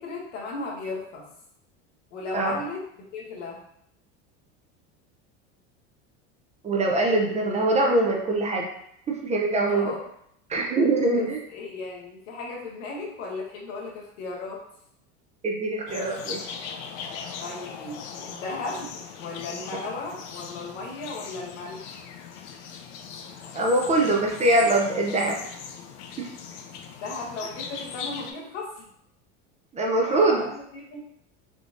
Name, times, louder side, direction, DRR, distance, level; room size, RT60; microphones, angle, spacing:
voice 1, 0.0-1.2 2.1-2.8 3.1-3.6 9.5-10.1 11.1-14.6 17.4-22.0 27.0-28.9 30.0-31.0, left 3 dB, 85° left, -1 dB, 1.0 m, -36 dB
voice 2, 6.6-8.7 9.1-9.9 10.5-11.4 15.4-16.5 23.5-25.4 26.2-26.3 29.7-30.4, right 2 dB, 20° right, 0 dB, 0.4 m, -23 dB
sound 1, 15.9-28.3, left 6 dB, 70° left, 0.5 m, -39 dB
3.7 x 2.3 x 2.5 m, 0.72 s
supercardioid pair, 110°, 36 cm